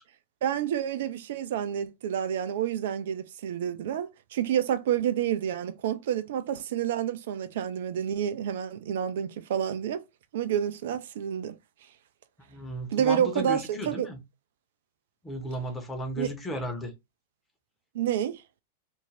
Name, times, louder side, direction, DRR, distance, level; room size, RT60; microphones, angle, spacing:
voice 1, 0.4-10.0 10.3-11.6 12.9-14.1 16.2-16.3 17.9-18.4, right 9 dB, 60° right, 0.4 m, -29 dB
voice 2, 12.5-14.2 15.2-16.9, equal, 15° left, 0.8 m, -34 dB
2.5 x 2.1 x 3.3 m
figure-of-eight pair, 95°, 0 cm